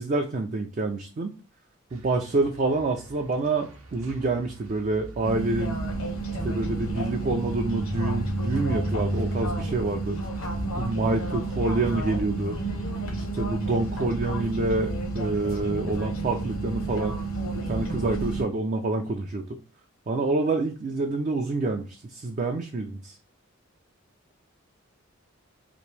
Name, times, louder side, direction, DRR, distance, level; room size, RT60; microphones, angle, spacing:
voice 1, 0.0-1.3 1.9-5.8 6.4-10.2 10.8-12.6 13.2-17.2 17.7-19.6 20.1-23.1, right 2 dB, 35° right, 3 dB, 0.4 m, -27 dB
sound 1, 1.9-14.2, right 2 dB, 80° right, 0.8 m, -46 dB
sound 2, 5.2-18.4, right 2 dB, 70° left, 1.0 m, -30 dB
3.0 x 2.5 x 3.2 m, 0.36 s
head